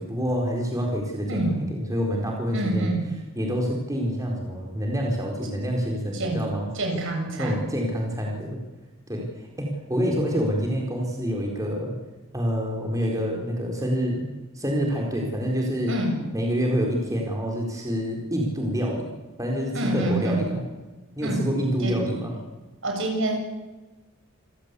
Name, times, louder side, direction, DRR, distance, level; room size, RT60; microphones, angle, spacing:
voice 1, 0.0-1.4 1.7-2.9 3.4-6.7 7.4-8.6 9.1-9.2 9.6-11.9 12.3-14.3 14.5-16.0 16.3-19.1 19.4-20.6 21.2-22.3, equal, 15° right, 0 dB, 4.4 m, -27 dB
voice 2, 1.3-1.7 2.5-3.1 6.1-6.5 6.7-7.7 15.9-16.2 19.7-20.5 21.2-21.4 21.8-22.0 22.8-23.4, right 1 dB, 60° right, 2 dB, 7.5 m, -27 dB
28.0 x 17.0 x 8.4 m, 1.2 s
head